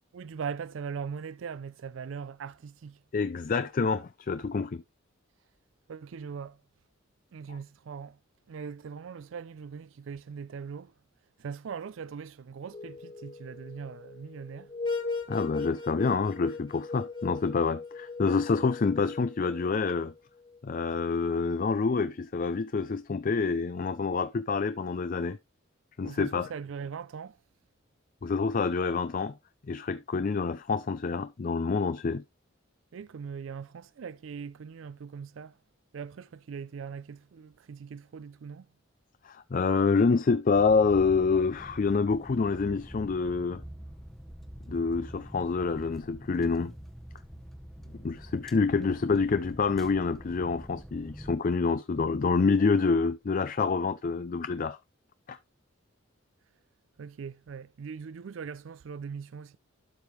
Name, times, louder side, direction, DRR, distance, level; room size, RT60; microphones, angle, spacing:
voice 1, 0.1-3.0 5.9-6.6 7.3-8.2 8.5-10.9 11.4-14.7 26.0-27.4 32.9-35.6 35.9-38.7 57.0-59.6, right 6 dB, 70° right, 0.4 m, -40 dB
voice 2, 3.1-4.8 15.3-20.1 20.6-25.4 26.0-26.5 28.2-29.3 29.7-32.2 39.2-43.6 44.7-46.7 48.0-54.8 55.3-55.4, left 4 dB, 40° left, 0.4 m, -27 dB
sound 1, 12.7-20.1, left 4 dB, 20° left, 1.8 m, -38 dB
sound 2, 40.5-51.4, equal, ahead, 0.9 m, -46 dB
12.0 x 5.2 x 3.1 m
head